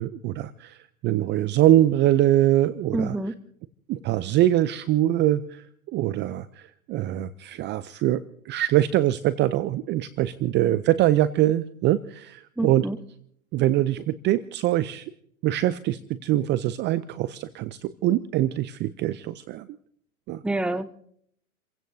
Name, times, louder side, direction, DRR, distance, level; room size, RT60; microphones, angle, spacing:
voice 1, 0.0-3.2 3.9-12.9 13.5-15.1 15.4-19.7 20.3-20.4, right 13 dB, 25° right, 15 dB, 0.5 m, -23 dB
voice 2, 2.9-3.3 12.6-13.0 20.4-20.9, right 2 dB, ahead, 13 dB, 0.8 m, -27 dB
29.5 x 16.5 x 2.7 m, 0.66 s
hypercardioid pair, 105°, 43 cm